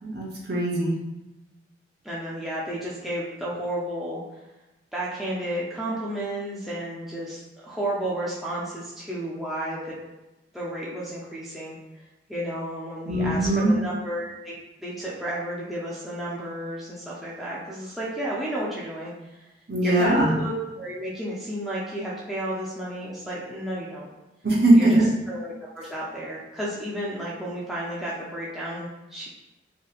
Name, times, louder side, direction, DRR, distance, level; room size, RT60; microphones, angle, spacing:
voice 1, 0.0-0.9 13.1-13.7 19.7-20.3 24.4-25.1, right 1 dB, 55° right, -3 dB, 0.8 m, -20 dB
voice 2, 2.0-4.2 4.9-9.9 10.5-11.8 12.3-19.1 19.8-24.1 24.7-25.0 25.3-29.3, right 1 dB, ahead, -8 dB, 0.4 m, -32 dB
2.8 x 2.7 x 2.4 m, 1.0 s
head